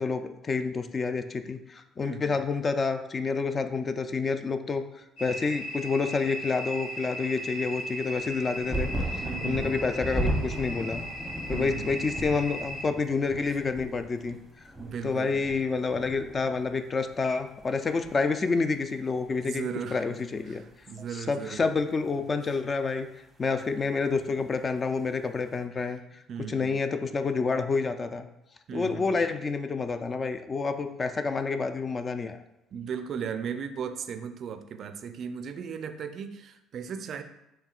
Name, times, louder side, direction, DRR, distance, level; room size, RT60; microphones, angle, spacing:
voice 1, 0.0-4.8 5.2-8.9 9.4-11.0 11.5-14.4 15.0-20.6 21.1-23.1 23.4-26.0 26.5-28.3 28.7-32.4, left 4 dB, 35° left, 8 dB, 0.3 m, -28 dB
voice 2, 2.0-2.4 9.2-9.8 11.5-12.0 14.8-15.4 19.4-20.2 20.5-21.7 26.3-26.7 28.7-29.2 32.7-37.2, right 7 dB, 55° right, 9 dB, 0.3 m, -37 dB
sound 1, 5.2-12.8, equal, 80° left, 1.1 m, -37 dB
sound 2, 8.1-17.2 17.5-18.4 19.3-19.4, right 1 dB, ahead, 0.8 m, -35 dB
4.5 x 3.2 x 2.4 m, 0.90 s
supercardioid pair, 80°, 0 cm